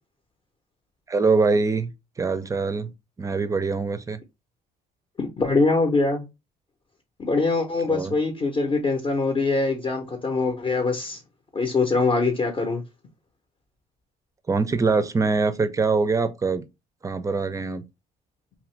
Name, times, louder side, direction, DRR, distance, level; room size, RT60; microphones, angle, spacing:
voice 1, 1.1-1.9 2.2-2.9 3.2-4.2 7.9-8.1 14.5-16.7 17.0-17.8, right 4 dB, 20° right, 0.4 m, -23 dB
voice 2, 5.2-6.2 7.2-11.2 11.5-12.8, left 3 dB, 30° left, 0.6 m, -23 dB
2.8 x 2.5 x 3.1 m
cardioid pair, 110°, 17 cm